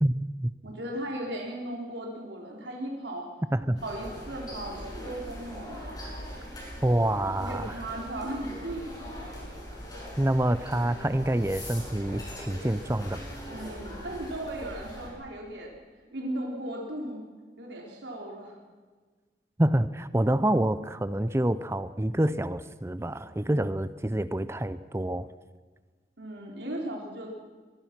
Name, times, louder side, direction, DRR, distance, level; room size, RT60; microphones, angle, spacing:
voice 1, 0.0-0.5 3.5-3.8 6.8-7.7 10.2-13.2 19.6-25.3, right 1 dB, 15° right, 15 dB, 0.6 m, -27 dB
voice 2, 0.6-3.3 3.8-5.9 7.4-8.9 13.5-15.7 16.0-17.3 17.6-18.5 26.2-27.3, right 1 dB, 90° right, -1 dB, 4.1 m, -36 dB
sound 1, 3.8-15.1, equal, 20° left, 7.2 m, -41 dB
23.5 x 22.0 x 6.1 m, 1.4 s
head